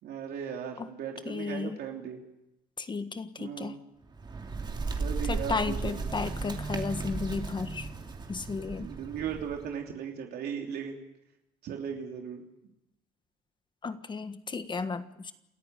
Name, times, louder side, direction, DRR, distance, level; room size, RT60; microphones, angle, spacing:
voice 1, 0.0-2.2 3.4-3.8 5.0-6.0 8.8-11.0 11.6-12.4, right 7 dB, 70° right, 2 dB, 3.1 m, -37 dB
voice 2, 1.2-1.8 2.8-3.8 5.3-7.9 8.3-8.9 13.8-15.3, left 4 dB, 25° left, 10 dB, 1.5 m, -34 dB
Bird, 4.0-9.8, right 4 dB, 25° right, 2.9 m, -35 dB
28.5 x 14.0 x 9.1 m, 0.90 s
cardioid pair, 110°, 17 cm